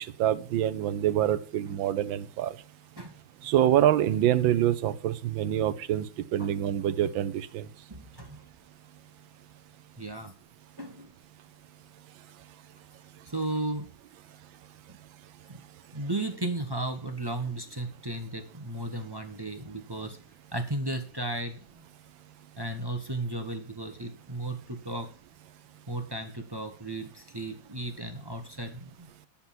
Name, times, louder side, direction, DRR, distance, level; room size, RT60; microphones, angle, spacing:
voice 1, 0.0-2.5 3.4-6.1 6.3-7.7, right 11 dB, 85° right, 14 dB, 1.5 m, -26 dB
voice 2, 7.9-8.4 10.0-10.3 10.8-11.1 13.3-13.9 15.5-15.6 15.9-20.2 20.5-21.8 22.6-25.1 25.9-29.1, right 2 dB, 15° right, 6 dB, 1.0 m, -35 dB
10.5 x 7.2 x 5.9 m, 0.40 s
omnidirectional pair, 2.1 m